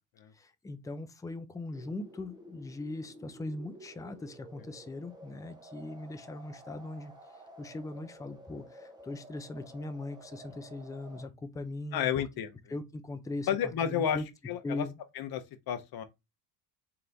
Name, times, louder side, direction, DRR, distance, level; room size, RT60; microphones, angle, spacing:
voice 1, 0.3-12.2 12.7-14.3 14.6-15.0, left 2 dB, 10° left, 0.5 m, -40 dB
sound 1, 1.7-11.2, right 1 dB, 10° right, 0.9 m, -52 dB
voice 2, 11.9-12.5 13.5-14.2 14.5-14.9 15.2-16.0, left 9 dB, 55° left, 0.9 m, -31 dB
3.4 x 3.1 x 3.9 m
cardioid pair, 120°, 46 cm